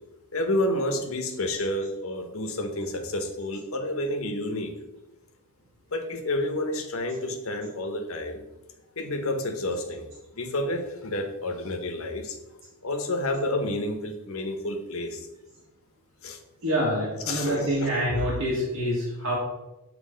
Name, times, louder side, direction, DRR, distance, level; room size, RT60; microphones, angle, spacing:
voice 1, 0.3-4.7 5.9-8.4 9.0-12.4 12.8-15.3 16.2-16.4 17.3-17.9, left 1 dB, 65° left, 5 dB, 0.9 m, -30 dB
voice 2, 16.6-19.4, equal, 70° right, -6 dB, 1.5 m, -26 dB
7.5 x 3.2 x 5.0 m, 1.0 s
head